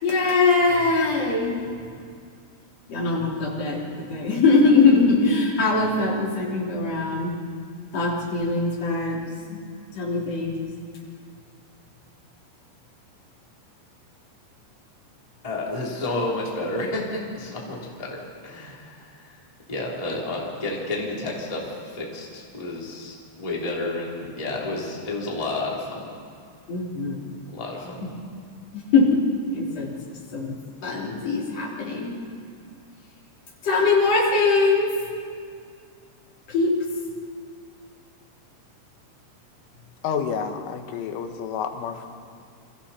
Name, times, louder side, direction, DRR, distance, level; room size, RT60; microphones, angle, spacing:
voice 1, 0.0-1.6 2.9-3.8 4.1-7.4 7.9-9.2 9.5-9.6 9.9-10.6 26.7-27.2 28.0-28.1 28.7-29.2 29.5-29.9 30.3-30.6 30.8-32.1 33.6-34.9 36.5-36.7, left 3 dB, 35° left, -4 dB, 3.9 m, -21 dB
voice 2, 15.4-19.3 19.7-26.1 27.5-28.0, left 2 dB, 10° left, -4 dB, 2.6 m, -31 dB
voice 3, 40.0-42.2, left 7 dB, 90° left, 6 dB, 3.7 m, -29 dB
29.0 x 24.0 x 4.3 m, 2.2 s
omnidirectional pair, 5.5 m